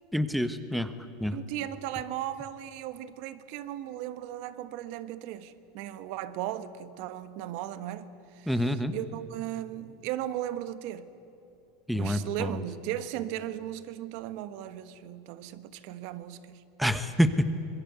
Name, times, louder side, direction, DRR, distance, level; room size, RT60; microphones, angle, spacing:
voice 1, 0.1-0.9 1.2-1.4 8.5-8.9 11.9-12.6 16.8-17.5, equal, ahead, 1.1 m, -27 dB
voice 2, 1.3-11.1 11.9-16.6, right 12 dB, 60° right, 1.3 m, -37 dB
25.5 x 21.5 x 8.2 m
supercardioid pair, 130°, 0 cm